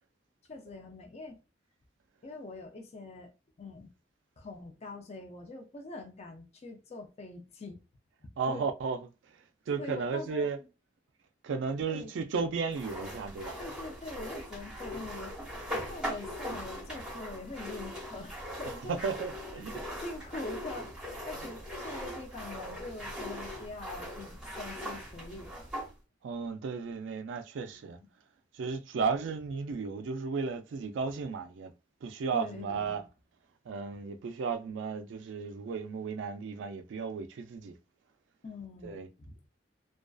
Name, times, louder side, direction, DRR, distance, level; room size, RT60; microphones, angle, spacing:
voice 1, 0.5-1.4 2.2-3.3 3.6-3.9 4.4-7.8 8.5-8.7 9.8-10.5 11.9-12.1 13.6-15.4 15.7-19.0 19.5-25.5 27.6-28.1 32.3-33.1 38.4-39.3, left 2 dB, 35° left, 0.4 m, -44 dB
voice 2, 8.4-9.0 9.7-10.6 11.4-13.6 19.0-19.7 21.4-21.5 26.2-28.0 28.5-31.7 32.0-33.0 33.7-37.7 38.8-39.1, right 5 dB, 80° right, 0.3 m, -34 dB
sound 1, 12.7-25.9, equal, 5° right, 0.8 m, -40 dB
2.4 x 2.3 x 2.3 m
head